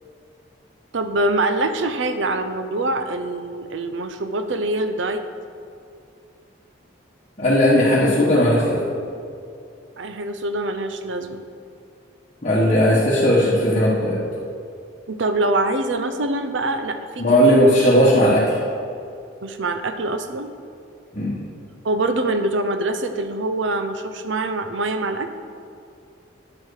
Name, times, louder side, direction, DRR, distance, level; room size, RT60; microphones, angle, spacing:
voice 1, 0.9-5.2 10.0-11.4 15.1-17.2 19.4-20.5 21.8-25.3, right 2 dB, 75° right, 8 dB, 0.7 m, -24 dB
voice 2, 7.4-8.8 12.4-14.2 17.2-18.6 21.1-21.4, equal, 35° left, -7 dB, 1.4 m, -17 dB
9.6 x 7.5 x 4.8 m, 2.5 s
head